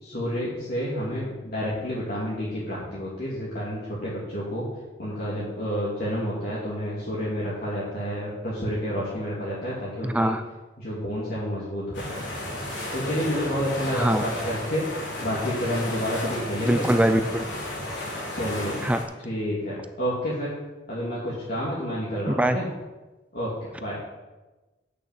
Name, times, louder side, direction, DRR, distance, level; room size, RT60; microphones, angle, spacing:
voice 1, 0.0-4.7 5.0-10.3 10.8-12.2 12.9-14.8 15.2-16.9 18.3-18.9 19.2-20.5 20.9-22.7 23.3-24.0, equal, 55° left, -8 dB, 2.5 m, -29 dB
voice 2, 10.0-10.4 13.9-14.3 16.7-17.4 18.8-19.0 22.3-22.6, right 1 dB, 5° right, 9 dB, 0.4 m, -22 dB
sound 1, 11.9-19.0, left 1 dB, 85° left, 3.7 m, -33 dB
8.9 x 6.7 x 7.5 m, 1.1 s
head